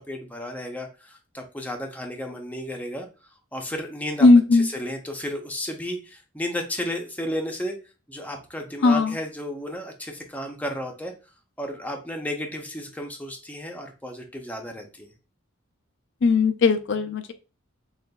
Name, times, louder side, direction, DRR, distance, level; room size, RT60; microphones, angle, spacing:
voice 1, 0.1-3.1 3.5-7.8 8.1-11.1 11.6-15.1, left 1 dB, 10° left, 3 dB, 0.6 m, -33 dB
voice 2, 4.2-4.7 8.8-9.1 16.2-17.3, left 3 dB, 60° left, 8 dB, 0.4 m, -17 dB
6.5 x 2.4 x 2.3 m, 0.31 s
head